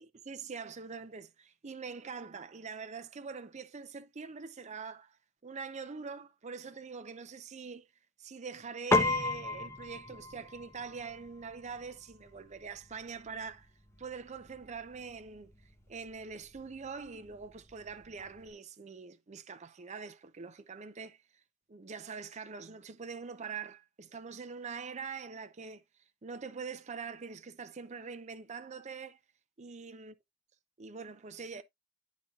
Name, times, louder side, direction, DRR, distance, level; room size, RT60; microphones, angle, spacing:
voice 1, 0.0-5.2 5.4-7.9 8.2-13.7 14.0-15.5 15.9-21.2 21.7-25.8 26.2-29.2 29.6-30.1 30.8-31.6, right 5 dB, 35° right, 0.5 m, -44 dB
Piano, 8.9-18.5, left 3 dB, 15° left, 0.8 m, -37 dB
11.0 x 4.2 x 2.4 m
head